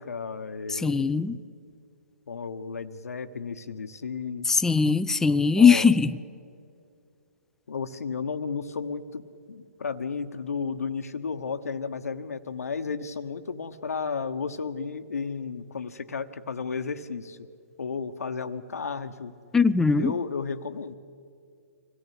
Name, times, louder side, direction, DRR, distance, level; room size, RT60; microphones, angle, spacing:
voice 1, 0.0-1.1 2.3-4.5 5.5-5.9 7.7-17.5 17.8-19.3 20.0-20.9, left 5 dB, 75° left, 1.2 m, -33 dB
voice 2, 0.7-1.4 4.5-6.1 19.5-20.1, left 5 dB, 5° left, 0.5 m, -20 dB
26.0 x 17.5 x 8.4 m
hypercardioid pair, 130°, 8 cm